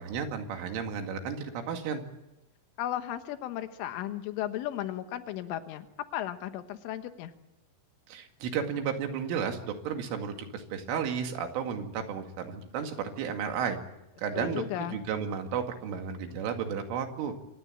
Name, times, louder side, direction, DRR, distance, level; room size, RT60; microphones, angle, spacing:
voice 1, 0.0-2.0 8.1-13.8 14.2-17.3, right 7 dB, 90° right, 5 dB, 4.7 m, -33 dB
voice 2, 2.8-5.9 6.1-7.3 14.3-15.0, left 12 dB, 90° left, 8 dB, 3.7 m, -35 dB
26.5 x 19.5 x 8.6 m, 0.91 s
omnidirectional pair, 5.5 m